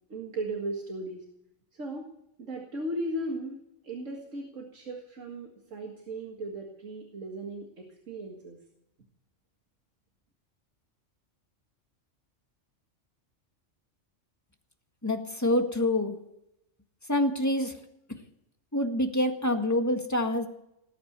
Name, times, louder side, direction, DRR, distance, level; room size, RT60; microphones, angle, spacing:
voice 1, 0.1-1.2 1.7-2.1 2.4-3.6 3.8-8.6, right 1 dB, 90° right, 1 dB, 2.3 m, -36 dB
voice 2, 15.0-16.2 17.1-17.8 18.7-20.5, left 1 dB, 15° left, 4 dB, 1.7 m, -26 dB
19.0 x 8.9 x 8.1 m, 0.81 s
omnidirectional pair, 1.3 m